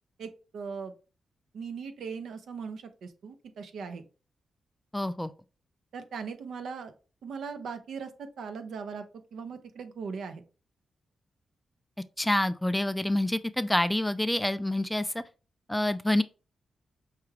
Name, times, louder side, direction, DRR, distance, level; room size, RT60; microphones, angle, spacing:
voice 1, 0.2-0.9 1.5-4.0 5.9-6.9 7.2-9.0 9.3-10.4, right 5 dB, 80° right, 0.6 m, -39 dB
voice 2, 4.9-5.3 12.2-15.2 15.7-16.2, left 1 dB, 5° left, 0.3 m, -27 dB
5.8 x 2.3 x 3.2 m
cardioid pair, 70°, 0 cm